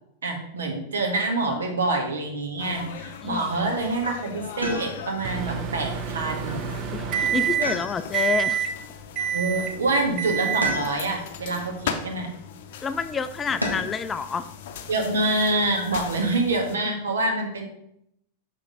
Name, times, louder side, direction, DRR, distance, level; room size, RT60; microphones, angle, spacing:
voice 1, 0.2-6.7 9.3-12.3 14.9-17.7, right 2 dB, 65° right, 2 dB, 1.5 m, -26 dB
sound 1, 2.6-16.8, left 7 dB, 55° left, 0.6 m, -39 dB
voice 2, 3.2-3.7 6.9-8.7 12.8-14.5 16.8-16.9, left 6 dB, 20° left, 12 dB, 0.4 m, -29 dB
sound 2, 4.6-5.3 7.6-8.4 10.6-11.3 13.6-14.1 15.8-16.4, equal, 90° right, 1.2 m, -32 dB
Microwave oven, 5.2-7.8 8.1-8.7 9.2-9.8 10.2-10.8, right 8 dB, 40° right, 0.7 m, -27 dB
6.4 x 6.1 x 3.7 m, 0.74 s
figure-of-eight pair, 90°, 0 cm